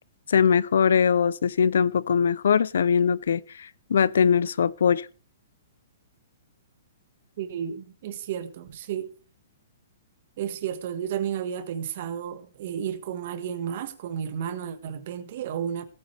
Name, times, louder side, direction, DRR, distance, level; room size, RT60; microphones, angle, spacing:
voice 1, 0.3-5.1, left 7 dB, 80° left, 0.5 m, -21 dB
voice 2, 7.4-9.1 10.4-15.8, right 9 dB, 50° right, 1.5 m, -32 dB
17.5 x 9.2 x 3.4 m
hypercardioid pair, 160°, 0 cm